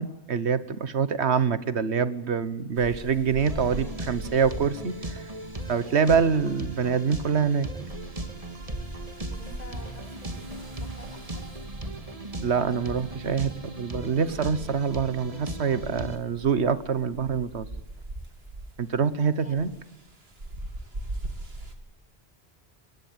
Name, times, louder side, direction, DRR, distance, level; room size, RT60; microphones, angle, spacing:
voice 1, 0.0-5.2 5.7-7.7 12.4-17.7 18.8-19.7, right 6 dB, 85° right, 15 dB, 1.5 m, -25 dB
sound 1, 2.7-21.8, right 1 dB, 70° right, 2.8 m, -42 dB
sound 2, 3.4-16.2, right 1 dB, 35° right, 2.2 m, -37 dB
voice 2, 9.3-11.5 19.4-19.6, left 2 dB, 40° left, 7 dB, 4.8 m, -48 dB
25.0 x 20.5 x 8.8 m, 0.87 s
omnidirectional pair, 1.1 m